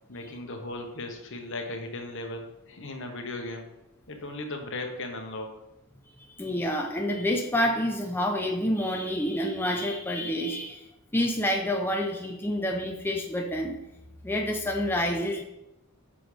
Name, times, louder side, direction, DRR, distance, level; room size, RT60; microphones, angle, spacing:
voice 1, 0.1-3.7 4.1-5.5, left 2 dB, 60° left, 3 dB, 1.2 m, -37 dB
voice 2, 6.4-10.8 11.1-13.8 14.2-15.4, left 1 dB, 10° left, 1 dB, 0.6 m, -28 dB
8.9 x 6.1 x 3.3 m, 0.90 s
head